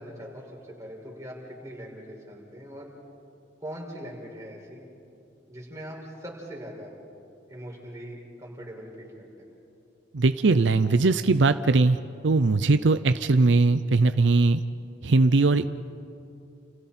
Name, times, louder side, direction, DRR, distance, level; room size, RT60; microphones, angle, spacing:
voice 1, 0.0-2.9 3.6-4.8 5.5-6.9 7.5-9.5, equal, 20° right, -3 dB, 5.5 m, -41 dB
voice 2, 10.1-12.0 12.2-14.6 15.0-15.7, right 3 dB, 75° right, 11 dB, 0.6 m, -20 dB
30.0 x 29.5 x 4.4 m, 2.6 s
head